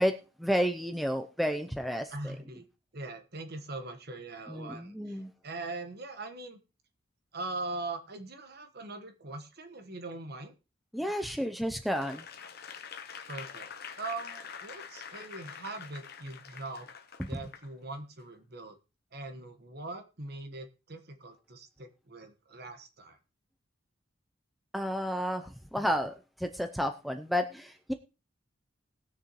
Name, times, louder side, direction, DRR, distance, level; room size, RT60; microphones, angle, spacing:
voice 1, 0.0-2.4 4.5-5.3 10.9-12.3 17.2-17.4 24.7-27.9, equal, ahead, 6 dB, 0.5 m, -31 dB
voice 2, 2.1-2.6 2.9-6.6 7.3-10.5 13.3-13.7 14.0-16.9 17.3-18.8 19.1-23.2, right 2 dB, 50° right, 7 dB, 1.3 m, -41 dB
Applause / Crowd, 11.9-17.7 18.2-18.3, left 7 dB, 50° left, 1.0 m, -45 dB
20.0 x 6.6 x 3.1 m, 0.30 s
head